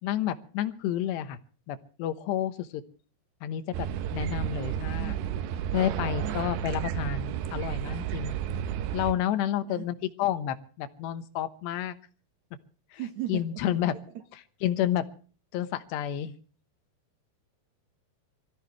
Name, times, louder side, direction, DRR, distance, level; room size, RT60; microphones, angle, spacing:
voice 1, 0.0-1.4 1.7-2.8 3.4-5.1 5.7-8.3 8.9-11.9 12.9-13.0 13.3-13.9 14.6-15.1 15.5-16.3, left 11 dB, 85° left, 11 dB, 3.2 m, -30 dB
sound 1, 3.7-9.1, right 10 dB, 85° right, 3.1 m, -32 dB
voice 2, 6.2-6.6 9.6-9.9 13.0-13.8, right 12 dB, 60° right, 6 dB, 2.0 m, -37 dB
25.5 x 15.0 x 3.1 m, 0.40 s
omnidirectional pair, 4.8 m